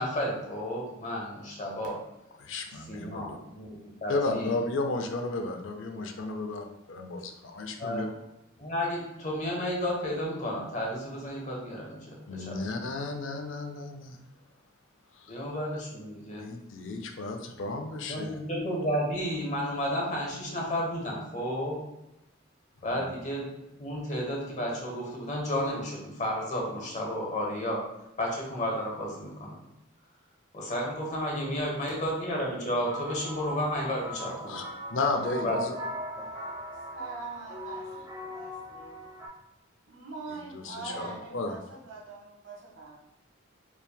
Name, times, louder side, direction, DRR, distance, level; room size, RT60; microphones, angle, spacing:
voice 1, 0.0-2.0 2.9-4.6 7.8-8.1 8.6-12.6 15.3-16.4 18.1-21.8 22.8-23.5 23.8-27.8 28.2-29.6 30.5-34.6 35.4-35.6 41.0-41.2, equal, 35° left, -1 dB, 1.0 m, -32 dB
voice 2, 2.4-3.4 4.1-8.1 12.3-14.2 15.2-15.4 16.4-18.3 34.5-34.6 34.9-35.8 40.5-41.1 41.3-41.6, left 3 dB, 65° left, 5 dB, 0.5 m, -33 dB
sound 1, 32.8-39.3, equal, 15° right, 0.8 m, -39 dB
voice 3, 36.9-39.0 39.9-43.0, right 4 dB, 65° right, -3 dB, 1.2 m, -43 dB
4.5 x 3.5 x 2.2 m, 0.92 s
head